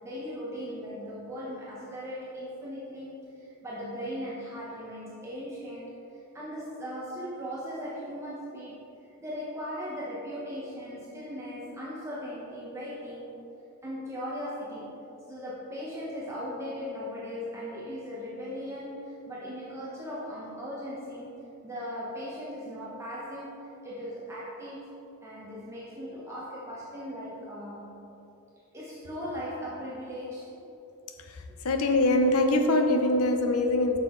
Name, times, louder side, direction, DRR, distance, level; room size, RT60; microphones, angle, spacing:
voice 1, 0.0-5.9 6.3-8.8 9.2-13.3 13.8-14.9 15.3-21.4 21.6-23.5 23.8-24.9 25.2-27.9 28.7-30.5, equal, 15° right, -7 dB, 1.0 m, -38 dB
voice 2, 31.2-34.0, left 2 dB, 85° left, 6 dB, 0.8 m, -24 dB
9.3 x 6.0 x 3.8 m, 2.9 s
head